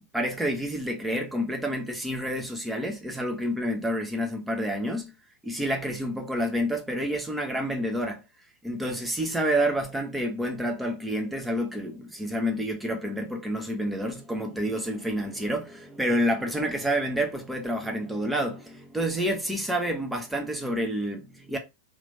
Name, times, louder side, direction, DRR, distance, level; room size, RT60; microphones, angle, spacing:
voice 1, 0.1-5.1 5.4-8.2 8.6-21.6, equal, 5° right, 0.8 m, -29 dB
2.9 x 2.6 x 3.3 m
figure-of-eight pair, 90°, 0 cm